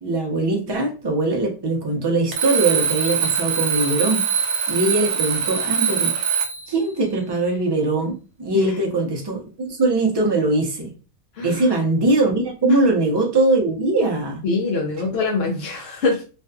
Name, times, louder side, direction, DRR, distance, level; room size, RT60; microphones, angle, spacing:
voice 1, 0.0-4.3 4.7-6.1 6.7-10.9 11.4-14.4, right 2 dB, 35° right, 0.4 m, -21 dB
Alarm, 2.3-6.7, right 7 dB, 70° right, 0.9 m, -22 dB
voice 2, 11.4-11.7 12.7-12.8 14.4-16.2, left 3 dB, 65° left, 0.8 m, -24 dB
2.5 x 2.5 x 2.2 m
omnidirectional pair, 1.3 m